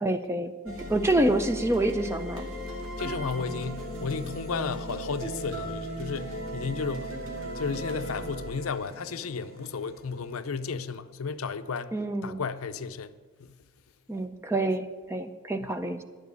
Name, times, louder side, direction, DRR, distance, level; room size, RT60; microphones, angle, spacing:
voice 1, 0.0-2.5 11.9-12.4 14.1-16.0, right 1 dB, 10° right, 0.5 m, -27 dB
sound 1, 0.7-10.8, equal, 80° right, 2.2 m, -37 dB
voice 2, 3.0-7.2 7.5-11.9 12.2-13.1 13.4-13.6 15.6-15.7, left 5 dB, 85° left, 0.6 m, -33 dB
11.0 x 7.4 x 8.1 m
head